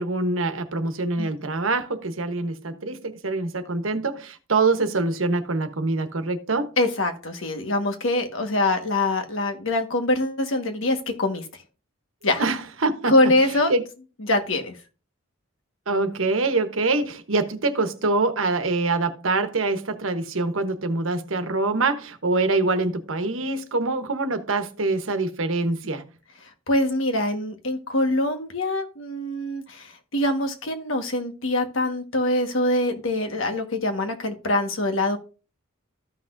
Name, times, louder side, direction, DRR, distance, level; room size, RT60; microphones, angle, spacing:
voice 1, 0.0-6.7 12.4-13.2 13.7-13.8 15.9-26.0, right 3 dB, 85° right, 1.1 m, -25 dB
voice 2, 6.8-11.5 12.2-12.4 13.1-13.7 14.2-14.7 26.7-35.2, left 1 dB, 75° left, 1.5 m, -24 dB
14.0 x 5.9 x 2.6 m
head